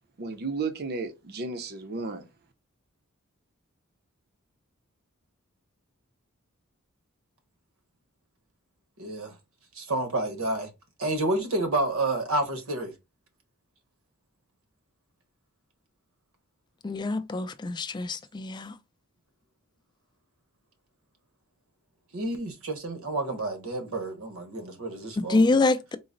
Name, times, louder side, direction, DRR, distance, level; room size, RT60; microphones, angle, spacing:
voice 1, 0.2-2.2, right 4 dB, 50° right, 0.6 m, -33 dB
voice 2, 9.0-9.3 9.7-10.7 11.0-12.9 22.1-25.6, right 2 dB, 70° right, 1.1 m, -29 dB
voice 3, 16.8-18.7 25.2-26.0, left 3 dB, 20° left, 0.3 m, -25 dB
3.9 x 2.0 x 3.8 m
head